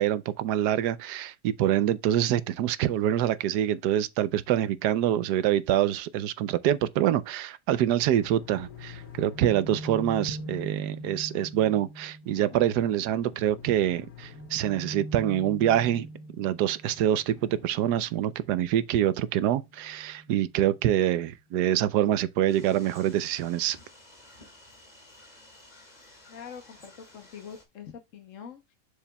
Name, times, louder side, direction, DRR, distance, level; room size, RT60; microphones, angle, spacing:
voice 1, 0.0-16.1 16.4-23.8, right 11 dB, 85° right, 1.2 m, -25 dB
sound 1, 8.0-20.8, equal, 85° left, 1.7 m, -42 dB
sound 2, 22.5-27.6, left 2 dB, 25° left, 2.0 m, -53 dB
voice 2, 26.3-28.8, left 7 dB, 55° left, 1.2 m, -44 dB
7.1 x 6.9 x 2.3 m
omnidirectional pair, 1.7 m